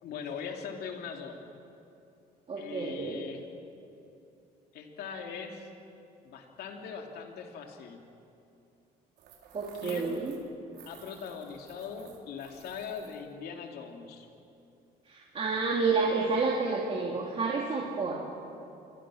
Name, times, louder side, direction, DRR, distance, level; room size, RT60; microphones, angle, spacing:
voice 1, 0.0-1.4 2.6-3.4 4.7-5.7 6.2-8.0 9.8-10.2 10.8-14.3, left 6 dB, 70° left, 2 dB, 3.0 m, -41 dB
voice 2, 2.5-3.2 9.5-10.3 15.1-18.2, right 4 dB, 35° right, -2 dB, 2.9 m, -30 dB
sound 1, 9.2-10.5 10.7-13.3, right 7 dB, 80° right, 3.8 m, -53 dB
27.5 x 23.0 x 6.5 m, 2.7 s
cardioid pair, 110°, 17 cm